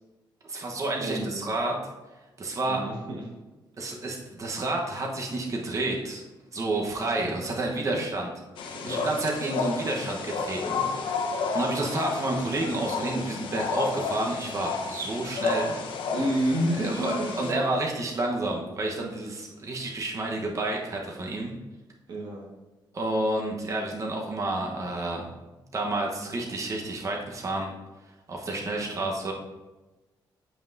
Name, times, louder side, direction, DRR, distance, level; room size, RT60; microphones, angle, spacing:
voice 1, 0.4-1.8 2.4-2.8 3.8-6.2 6.5-8.3 8.8-10.8 11.5-15.8 16.8-21.5 22.9-25.3 25.7-27.7 28.3-29.3, right 2 dB, 40° right, 0 dB, 1.1 m, -30 dB
voice 2, 1.0-1.5 2.6-3.2 7.9-8.0 8.7-9.1 16.1-17.5 22.1-22.5, right 1 dB, 65° right, -3 dB, 1.7 m, -30 dB
sound 1, 8.6-17.5, left 4 dB, 85° left, 0.8 m, -31 dB
8.4 x 5.6 x 2.7 m, 1.1 s
cardioid pair, 120°, 8 cm